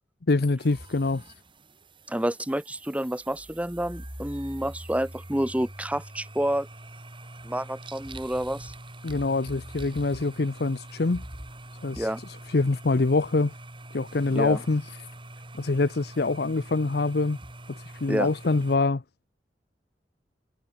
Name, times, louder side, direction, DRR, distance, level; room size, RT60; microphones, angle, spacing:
voice 1, 0.3-1.2 9.0-11.2 11.8-12.1 12.5-13.5 13.9-14.8 15.6-17.4 18.0-19.0, left 3 dB, 60° left, 0.7 m, -25 dB
sound 1, 0.6-18.8, right 1 dB, 30° right, 5.8 m, -44 dB
voice 2, 2.1-6.7 7.4-8.7 12.0-12.2 14.3-14.6 18.1-18.3, right 1 dB, 10° right, 1.1 m, -29 dB
head